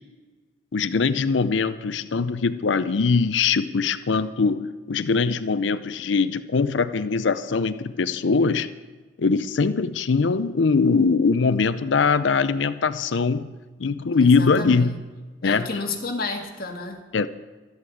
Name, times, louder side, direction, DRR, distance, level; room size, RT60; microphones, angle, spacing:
voice 1, 0.7-8.7 9.2-13.5 13.8-14.9 15.4-15.7 17.1-17.3, left 4 dB, 80° left, 14 dB, 0.5 m, -22 dB
voice 2, 14.1-14.9 15.4-17.0, left 3 dB, 50° left, 2 dB, 1.8 m, -31 dB
13.0 x 8.1 x 8.4 m, 1.3 s
head